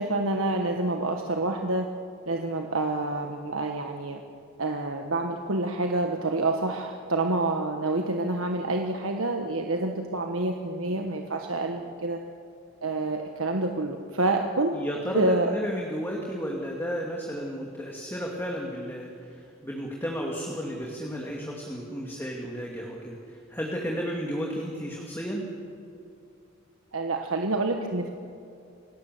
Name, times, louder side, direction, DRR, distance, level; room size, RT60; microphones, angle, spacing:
voice 1, 0.0-1.9 2.3-4.2 4.6-12.2 12.8-14.8 15.1-15.5 26.9-28.1, right 2 dB, 80° right, 3 dB, 1.3 m, -27 dB
voice 2, 14.7-19.1 19.6-23.2 23.5-25.5, equal, 10° left, -1 dB, 2.4 m, -33 dB
28.5 x 18.5 x 7.9 m, 2.5 s
head